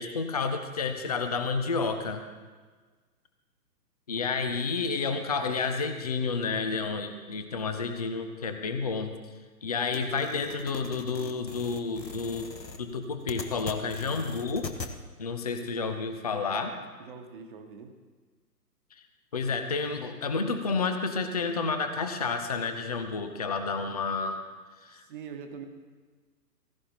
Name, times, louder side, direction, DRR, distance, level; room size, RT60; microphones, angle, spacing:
voice 1, 0.0-2.2 4.1-9.1 9.6-12.5 12.8-14.7 15.2-16.8 19.3-24.4 24.8-25.0, left 4 dB, 25° left, 7 dB, 0.5 m, -30 dB
voice 2, 4.1-5.6 17.0-17.9 24.9-25.7, right 6 dB, 30° right, 5 dB, 1.2 m, -45 dB
sound 1, 9.9-14.9, left 4 dB, 80° left, 1.2 m, -41 dB
15.5 x 15.5 x 2.9 m, 1.4 s
figure-of-eight pair, 130°, 50 cm